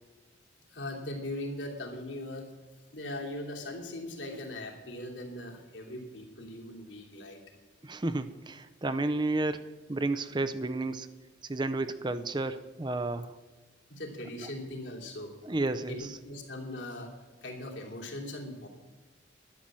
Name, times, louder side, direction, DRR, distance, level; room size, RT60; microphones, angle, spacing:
voice 1, 0.7-2.5 2.9-7.4 13.9-15.3 15.9-17.1 17.4-18.7, left 1 dB, 75° left, 0 dB, 2.9 m, -40 dB
voice 2, 7.8-11.1 11.4-13.4 15.4-16.2, right 2 dB, 25° right, 11 dB, 0.5 m, -32 dB
12.0 x 10.5 x 7.4 m, 1.3 s
head